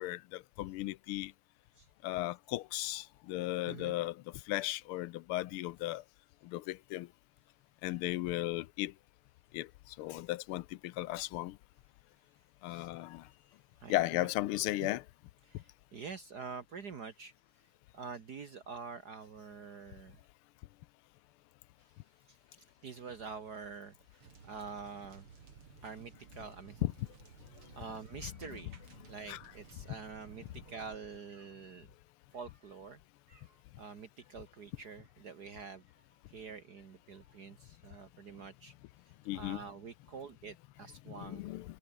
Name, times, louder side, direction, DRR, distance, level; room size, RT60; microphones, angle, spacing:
voice 1, 0.0-1.3 2.0-6.0 6.4-7.1 7.8-8.9 9.5-11.6 12.6-13.3 13.9-15.0 26.8-27.1 28.2-28.3 29.3-29.4 29.9-30.0 39.3-39.6 41.1-41.8, left 16 dB, 85° left, 1.6 m, -36 dB
voice 2, 3.7-4.0 12.7-12.9 13.8-14.3 14.8-14.9 15.5-17.3 17.9-20.2 22.3-25.3 25.8-26.9 27.7-31.9 32.3-33.0 33.3-35.8 36.3-38.7 39.3-41.5, right 5 dB, 50° right, 2.0 m, -47 dB
sound 1, 24.2-31.0, right 6 dB, 85° right, 3.5 m, -56 dB
omnidirectional pair, 2.3 m